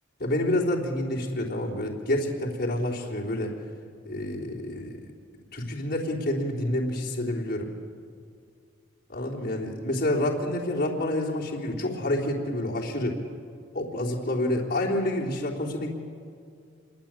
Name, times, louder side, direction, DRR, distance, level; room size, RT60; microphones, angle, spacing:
voice 1, 0.2-3.5 4.1-5.0 5.5-7.7 9.1-13.2 13.7-15.9, left 1 dB, 50° left, -3 dB, 3.5 m, -28 dB
27.0 x 23.5 x 8.9 m, 2.3 s
head